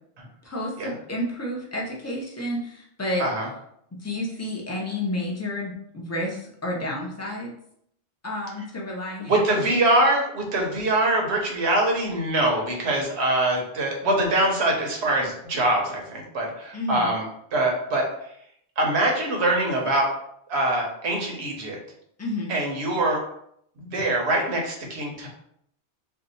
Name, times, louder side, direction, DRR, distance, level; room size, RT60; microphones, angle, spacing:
voice 1, 0.4-3.3 4.0-7.5 8.2-9.7 16.7-17.1 22.2-22.6, left 1 dB, 20° left, -2 dB, 0.5 m, -30 dB
voice 2, 9.3-17.2 17.5-18.1 18.8-20.1 20.5-21.8 22.5-23.2 23.8-25.3, right 1 dB, 75° right, 0 dB, 1.0 m, -23 dB
2.7 x 2.2 x 3.9 m, 0.71 s
omnidirectional pair, 1.1 m